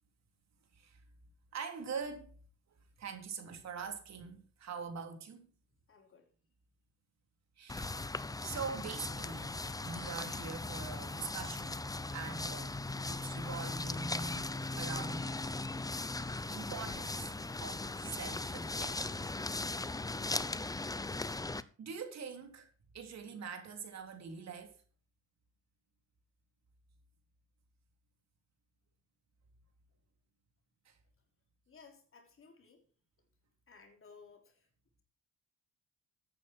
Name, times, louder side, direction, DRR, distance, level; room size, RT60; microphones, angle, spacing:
voice 1, 1.5-2.4 3.0-5.5 7.6-8.1 8.4-9.5 9.8-11.8 12.1-12.8 13.1-14.5 14.8-15.6 16.5-17.3 17.6-19.2 20.2-20.6 21.8-22.7 22.9-24.8 30.8-31.0, right 5 dB, 60° right, 3.4 m, -44 dB
voice 2, 5.9-6.3 31.7-32.9 33.7-34.7, left 5 dB, 45° left, 3.5 m, -58 dB
sound 1, 7.7-21.6, left 2 dB, 10° left, 0.7 m, -38 dB
13.5 x 9.2 x 4.5 m
cardioid pair, 90°, 30 cm